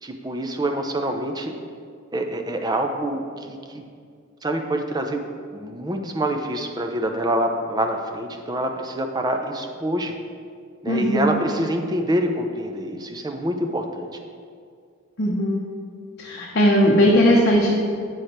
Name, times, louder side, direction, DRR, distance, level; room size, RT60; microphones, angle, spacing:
voice 1, 0.0-1.5 2.1-3.8 4.4-5.2 5.5-10.2 10.8-14.1, right 1 dB, 20° right, 4 dB, 0.5 m, -26 dB
voice 2, 10.9-11.4 15.2-15.6 16.2-17.7, equal, 50° left, -3 dB, 0.8 m, -18 dB
7.9 x 4.9 x 4.3 m, 2.2 s
head